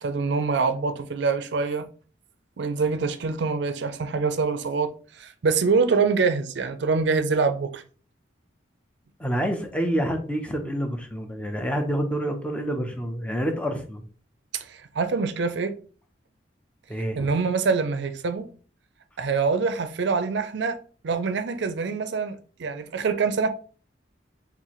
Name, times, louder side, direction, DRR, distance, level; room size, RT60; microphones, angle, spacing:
voice 1, 0.0-1.9 2.6-7.8 14.5-15.7 17.2-18.5 19.2-20.8 21.0-23.5, right 4 dB, 60° right, 0.4 m, -25 dB
voice 2, 9.2-14.0 16.9-17.3, equal, 5° left, 0.6 m, -28 dB
4.6 x 3.5 x 3.0 m
head